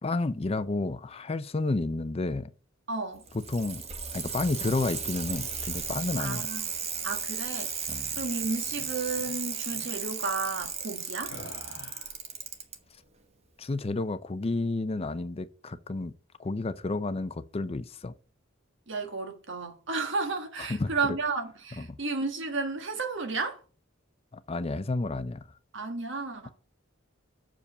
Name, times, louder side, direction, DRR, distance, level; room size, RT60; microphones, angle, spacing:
voice 1, 0.0-2.5 3.5-3.8 4.1-6.5 7.9-8.1 13.6-16.1 16.4-18.1 20.7-20.9 21.8-21.9 24.3-25.5, left 2 dB, 30° left, 0.5 m, -31 dB
voice 2, 2.9-3.2 6.2-6.7 7.0-7.7 8.2-11.3 18.9-23.6 25.7-26.5, right 3 dB, 60° right, 1.5 m, -32 dB
Bicycle, 3.1-12.8 13.9-14.0, right 6 dB, 30° right, 1.1 m, -35 dB
sound 1, 5.7-6.5 7.4-8.0 8.6-8.9 9.1-9.4 9.7-9.9 11.2-12.2, left 2 dB, 60° left, 2.1 m, -48 dB
6.7 x 5.0 x 7.1 m
head